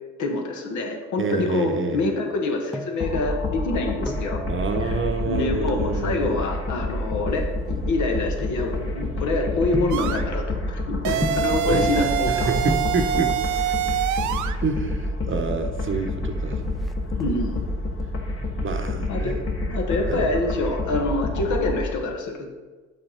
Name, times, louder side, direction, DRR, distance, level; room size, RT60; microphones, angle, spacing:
voice 1, 0.2-4.4 4.8-5.0 5.2-12.5 17.2-17.6 19.1-19.3 19.7-22.5, left 2 dB, 75° left, 2 dB, 1.4 m, -26 dB
voice 2, 1.2-2.0 4.5-6.4 11.0-11.3 11.7-13.4 14.6-16.6 18.6-19.4 20.1-20.3, right 4 dB, 40° right, 6 dB, 0.9 m, -28 dB
sound 1, 2.3-3.1 3.8-4.4 5.6-6.0 6.7-9.1 9.7-10.1 11.2-11.6 12.4-12.5 12.7-13.0 14.1-14.7 15.0-15.1 15.3-15.4 15.8-16.2 16.5-17.6 18.0-18.4 18.8-19.9 20.2-20.3, left 1 dB, ahead, 0.5 m, -34 dB
sound 2, 3.0-21.8, left 2 dB, 45° left, 1.3 m, -28 dB
sound 3, 9.9-10.2 11.0-14.6, right 10 dB, 75° right, 0.5 m, -25 dB
7.9 x 5.4 x 4.3 m, 1.3 s
cardioid pair, 90°, 30 cm